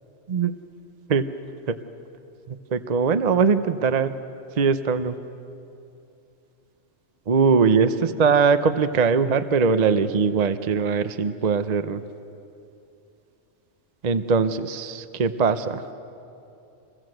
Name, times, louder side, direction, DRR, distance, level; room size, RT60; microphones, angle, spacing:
voice 1, 2.5-4.1 4.6-5.2 7.3-12.0 14.0-15.8, right 5 dB, 40° right, 11 dB, 0.7 m, -21 dB
26.5 x 21.0 x 7.8 m, 2.7 s
omnidirectional pair, 1.2 m